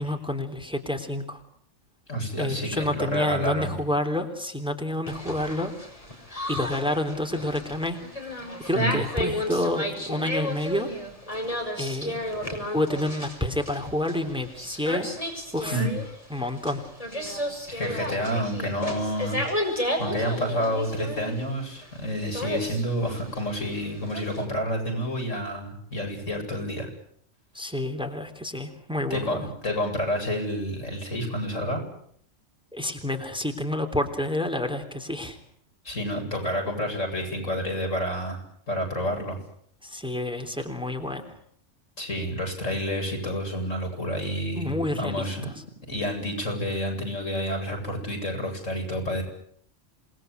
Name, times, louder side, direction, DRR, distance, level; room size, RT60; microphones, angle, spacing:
voice 1, 0.0-1.4 2.4-5.7 6.5-8.0 8.7-10.9 11.8-12.2 12.7-15.1 15.5-15.8 16.3-16.8 27.5-29.5 32.7-35.4 39.8-41.3 44.6-45.5, left 1 dB, 5° right, 5 dB, 3.5 m, -29 dB
voice 2, 2.1-3.7 8.6-8.9 15.7-16.0 17.7-26.9 29.1-31.8 35.8-38.4 38.7-39.4 42.0-45.5 45.9-49.2, equal, 75° left, 2 dB, 8.6 m, -29 dB
sound 1, 5.1-24.5, left 1 dB, 25° left, 6.6 m, -33 dB
28.5 x 21.0 x 9.4 m, 0.66 s
omnidirectional pair, 1.3 m